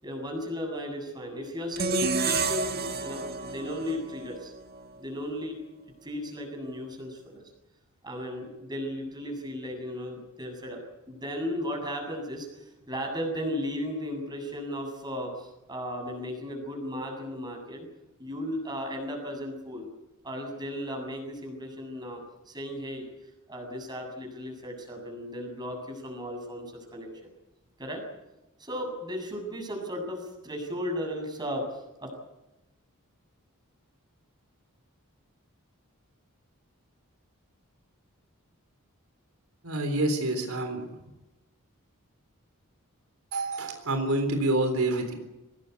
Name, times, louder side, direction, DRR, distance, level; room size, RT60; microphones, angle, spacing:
voice 1, 0.0-4.5 5.0-5.6 6.0-7.4 8.0-17.9 18.2-19.9 20.2-23.1 23.5-27.3 27.8-28.0 28.6-32.1, equal, 20° right, 2 dB, 7.7 m, -35 dB
sound 1, 1.8-4.9, right 4 dB, 45° right, 2.0 m, -30 dB
voice 2, 39.6-40.9 43.3-45.1, right 2 dB, 80° right, 6 dB, 3.7 m, -27 dB
24.0 x 20.0 x 8.3 m, 0.98 s
head